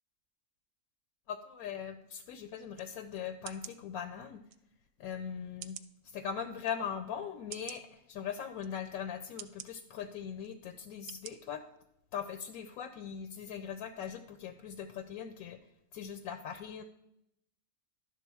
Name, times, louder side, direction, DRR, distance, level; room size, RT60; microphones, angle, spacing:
voice 1, 1.3-4.4 5.0-5.8 6.0-11.6 12.1-15.6 15.9-16.8, left 8 dB, 80° left, 9 dB, 1.1 m, -40 dB
sound 1, 2.7-2.9 3.4-3.8 4.5-4.6 5.6-5.9 6.6-6.7 7.5-7.8 8.6-8.7 9.4-9.7 10.4-10.5 11.1-11.3 11.8-11.9, right 10 dB, 70° right, 0.9 m, -46 dB
11.5 x 3.8 x 6.9 m, 0.81 s
omnidirectional pair, 1.5 m